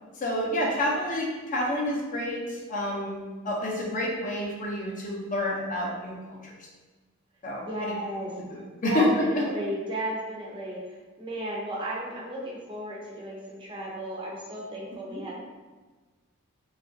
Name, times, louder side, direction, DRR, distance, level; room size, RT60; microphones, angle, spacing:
voice 1, 0.2-6.1 6.4-6.5 7.4-8.0 8.5-9.4 15.1-15.2, left 1 dB, 40° left, -2 dB, 0.5 m, -28 dB
voice 2, 7.6-8.4 8.8-10.8 11.2-15.3, right 1 dB, 25° right, -4 dB, 0.5 m, -34 dB
2.8 x 2.4 x 2.6 m, 1.3 s
head